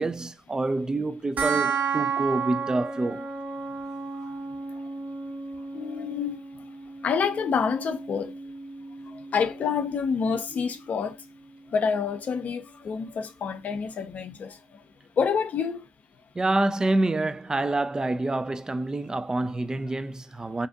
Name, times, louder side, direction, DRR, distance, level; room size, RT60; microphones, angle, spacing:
voice 1, 0.0-3.3 16.3-20.7, right 2 dB, 20° right, 0.3 m, -27 dB
sound 1, 1.4-12.3, right 5 dB, 50° right, 0.7 m, -34 dB
voice 2, 5.7-6.4 7.0-8.3 9.1-11.2 11.7-14.8 15.2-15.8, left 6 dB, 55° left, 0.5 m, -28 dB
2.6 x 2.4 x 2.3 m
hypercardioid pair, 45°, 3 cm